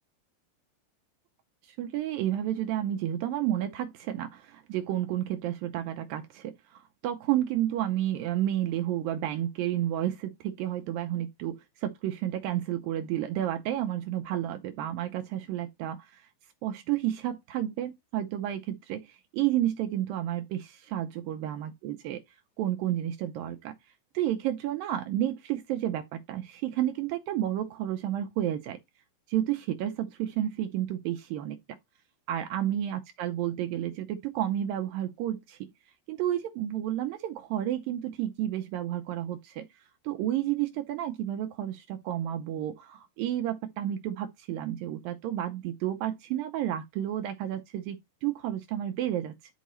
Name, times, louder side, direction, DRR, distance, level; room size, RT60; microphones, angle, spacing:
voice 1, 1.6-16.3 16.6-22.2 22.6-23.8 24.1-28.8 29.3-31.6 32.3-35.7 36.1-49.5, right 12 dB, 90° right, 2.0 m, -31 dB
11.0 x 4.6 x 3.1 m
omnidirectional pair, 4.9 m